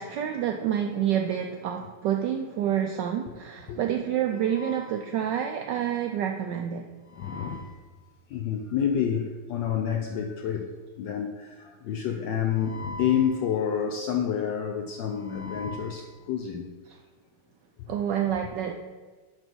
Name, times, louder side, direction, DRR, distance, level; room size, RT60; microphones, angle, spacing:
voice 1, 0.0-6.9 17.9-18.7, right 9 dB, 80° right, 1.0 m, -28 dB
voice 2, 4.5-5.1 7.1-7.8 8.3-10.7 11.0-16.7, left 8 dB, 75° left, 1.1 m, -29 dB
8.9 x 3.2 x 6.1 m
omnidirectional pair, 2.4 m